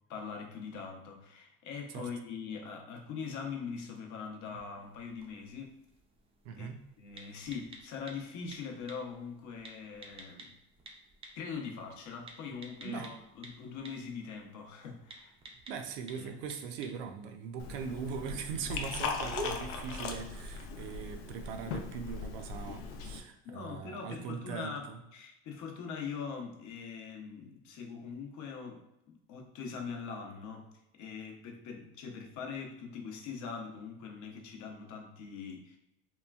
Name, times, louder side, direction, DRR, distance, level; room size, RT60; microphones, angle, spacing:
voice 1, 0.1-5.8 6.6-6.7 7.0-10.5 11.3-15.3 16.1-16.3 18.8-18.9 20.7-20.9 23.4-30.7 31.0-35.8, left 5 dB, 50° left, 2 dB, 0.7 m, -42 dB
sound 1, 4.8-23.1, right 1 dB, 15° right, 0.3 m, -52 dB
voice 2, 6.4-6.8 12.8-13.1 15.7-25.0, right 6 dB, 85° right, 6 dB, 0.5 m, -40 dB
Liquid, 17.6-23.2, left 4 dB, 90° left, 0.5 m, -39 dB
2.9 x 2.2 x 2.3 m, 0.87 s
supercardioid pair, 105°, 37 cm